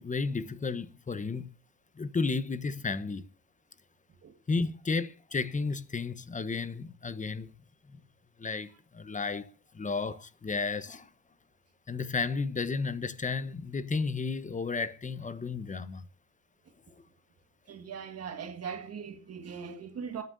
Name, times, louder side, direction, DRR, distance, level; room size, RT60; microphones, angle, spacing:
voice 1, 0.0-1.5 2.0-3.2 4.5-7.5 8.4-11.1 11.9-16.0, left 4 dB, 25° left, 1.0 m, -33 dB
voice 2, 17.7-20.2, right 6 dB, 55° right, 1.8 m, -40 dB
25.5 x 9.4 x 2.7 m
cardioid pair, 90°, 30 cm